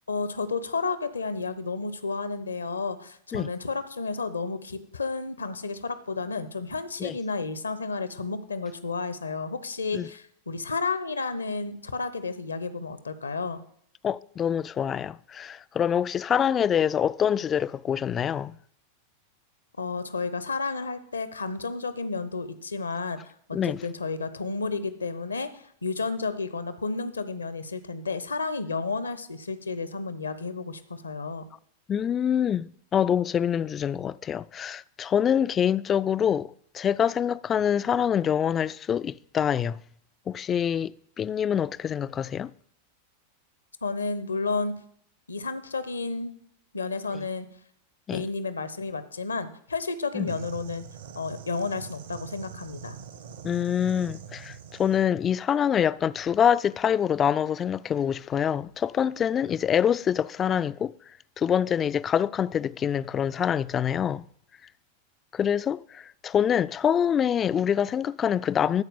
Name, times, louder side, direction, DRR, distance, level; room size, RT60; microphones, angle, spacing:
voice 1, 0.1-13.6 19.8-31.5 43.8-44.8 45.3-46.3 46.7-47.5 48.1-50.8 51.1-53.0, left 4 dB, 75° left, 0.8 m, -32 dB
voice 2, 14.0-18.6 23.5-23.8 31.9-39.8 40.3-42.5 48.1-48.3 50.1-50.3 53.4-60.9 61.4-64.3 65.3-68.8, left 8 dB, 25° left, 0.3 m, -25 dB
sound 1, 50.3-55.1, right 7 dB, 60° right, 0.8 m, -43 dB
13.5 x 4.5 x 7.0 m
figure-of-eight pair, 90°, 0 cm